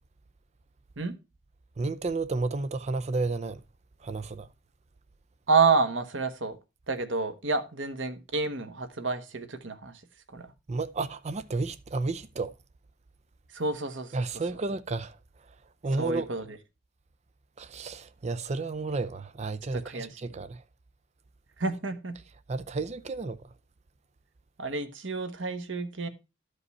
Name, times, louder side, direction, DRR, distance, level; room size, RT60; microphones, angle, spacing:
voice 1, 1.8-3.6 4.0-4.5 10.7-12.5 14.1-15.2 15.5-15.6 15.8-16.3 17.6-20.6 22.5-23.4, right 3 dB, 35° right, 0.5 m, -32 dB
voice 2, 5.5-6.6 6.9-10.0 10.3-10.5 13.5-14.2 15.9-16.6 19.7-20.2 21.6-22.1 24.6-26.1, right 4 dB, 80° right, 1.3 m, -29 dB
12.5 x 5.3 x 4.1 m
head